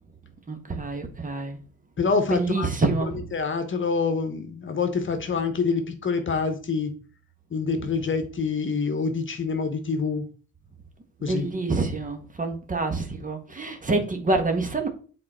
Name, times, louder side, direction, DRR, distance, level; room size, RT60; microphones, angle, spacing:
voice 1, 0.5-1.6 2.3-3.2 11.2-14.9, right 3 dB, 25° right, 1.6 m, -27 dB
voice 2, 2.0-2.7 3.0-6.9 7.5-10.3 11.2-11.5, left 4 dB, 40° left, 1.3 m, -26 dB
7.5 x 4.3 x 4.4 m
cardioid pair, 90°, 30 cm